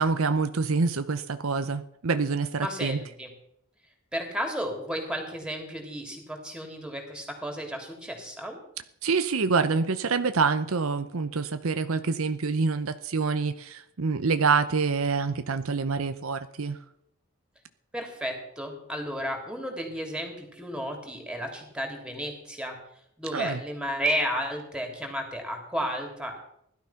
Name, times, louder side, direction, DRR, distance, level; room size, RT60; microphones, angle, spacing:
voice 1, 0.0-3.0 9.0-16.8 23.3-23.6, right 4 dB, 65° right, 11 dB, 0.7 m, -26 dB
voice 2, 2.6-3.3 4.1-8.6 17.9-22.8 23.2-26.4, equal, 5° right, 3 dB, 3.3 m, -33 dB
16.5 x 12.0 x 5.8 m, 0.74 s
head